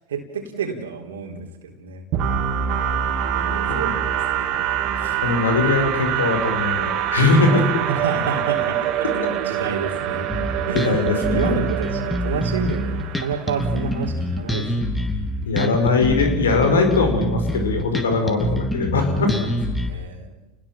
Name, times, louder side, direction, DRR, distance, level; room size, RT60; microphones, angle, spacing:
voice 1, 0.1-2.0 3.3-4.1 5.0-5.2 7.6-10.3 10.7-11.0 11.2-14.9 19.4-19.5 19.9-20.4, right 4 dB, 80° right, 1 dB, 3.7 m, -29 dB
sound 1, 2.1-13.9, right 10 dB, 50° right, 2.8 m, -25 dB
voice 2, 5.2-7.7 10.7-11.6 15.5-19.3, left 3 dB, 80° left, 6 dB, 5.4 m, -20 dB
Bass guitar, 10.3-19.9, equal, 10° left, 3.5 m, -25 dB
30.0 x 19.5 x 7.6 m, 1.0 s
hypercardioid pair, 85°, 0 cm